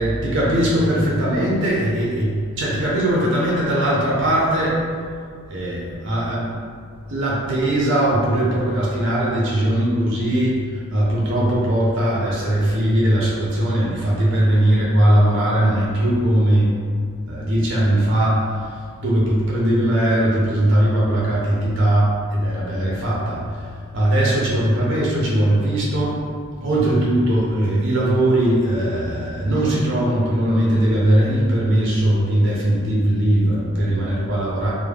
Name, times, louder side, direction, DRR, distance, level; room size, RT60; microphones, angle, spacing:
voice 1, 0.0-4.8 5.5-6.6 7.0-16.8 17.3-26.2 26.6-34.7, right 1 dB, 55° right, -5 dB, 0.5 m, -19 dB
2.3 x 2.0 x 3.2 m, 2.1 s
head